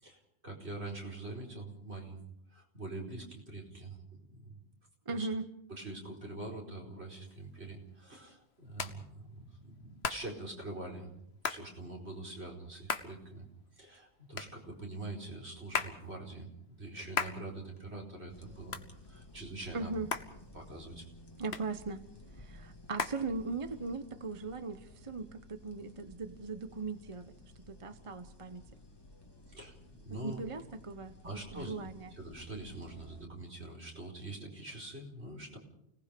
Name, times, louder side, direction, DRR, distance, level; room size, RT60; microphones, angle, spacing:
voice 1, 0.0-2.2 2.5-4.6 5.1-5.3 5.7-11.1 11.4-13.5 13.8-18.8 19.1-19.9 20.5-21.0 29.5-30.4 31.2-31.7 32.1-35.6, right 2 dB, 70° right, 0 dB, 4.9 m, -44 dB
voice 2, 5.1-5.5 19.7-20.1 21.4-22.0 22.4-27.3 27.7-28.6 30.2-32.1, right 3 dB, 30° right, 9 dB, 1.0 m, -39 dB
Hands, 7.3-23.9, left 5 dB, 70° left, 1.4 m, -42 dB
sound 1, 18.3-33.2, left 1 dB, 20° left, 2.2 m, -55 dB
29.5 x 19.0 x 5.2 m, 0.73 s
omnidirectional pair, 1.1 m